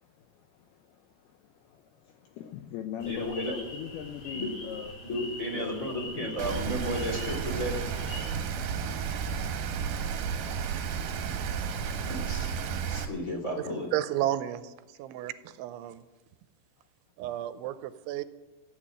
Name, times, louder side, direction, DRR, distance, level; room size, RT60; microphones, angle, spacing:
voice 1, 0.0-5.0 5.4-5.8 6.2-6.6 9.3-9.5 11.8-12.0, left 10 dB, 80° left, 6 dB, 2.3 m, -42 dB
sound 1, 3.0-8.3, left 1 dB, 35° left, 3.7 m, -43 dB
voice 2, 3.0-3.5 4.3-4.5 5.0-7.8 12.0-12.5 12.9-13.9, equal, 20° left, 0 dB, 3.0 m, -33 dB
Rain, 6.4-13.1, right 7 dB, 65° right, 2.6 m, -32 dB
voice 3, 13.9-14.7 15.0-16.0 17.2-18.2, right 13 dB, 85° right, 12 dB, 3.0 m, -32 dB
14.5 x 8.9 x 8.9 m, 1.1 s
omnidirectional pair, 5.4 m